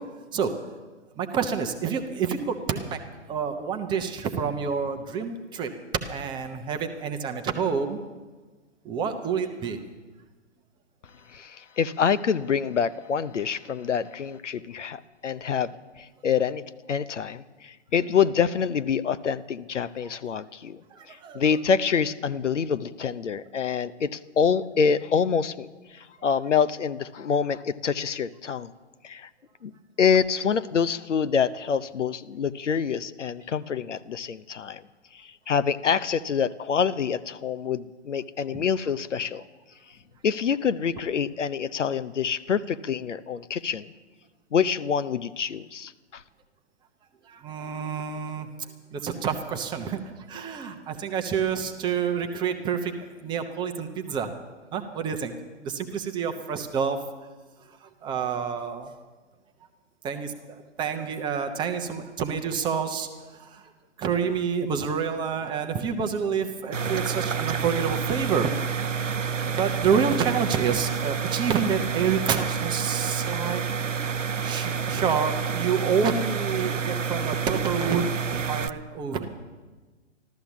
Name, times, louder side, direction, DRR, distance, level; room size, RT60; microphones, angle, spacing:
voice 1, 1.2-3.0 3.3-5.7 6.1-8.0 8.8-9.8 20.9-21.4 38.5-38.6 47.3-48.5 48.9-54.3 54.7-55.3 55.6-57.0 57.8-58.9 60.0-63.1 63.4-63.6 64.0-68.5 69.4-73.6 74.4-79.3, right 6 dB, 10° right, 6 dB, 0.8 m, -28 dB
voice 2, 11.3-15.7 16.0-16.6 16.9-20.8 21.1-28.7 29.0-29.3 29.6-29.7 30.0-34.8 35.1-39.4 40.2-43.9 44.5-46.2, left 6 dB, 75° left, 15 dB, 0.8 m, -26 dB
sound 1, 66.7-78.7, right 6 dB, 85° right, 0.7 m, -29 dB
14.0 x 13.0 x 7.1 m, 1.3 s
figure-of-eight pair, 125°, 37 cm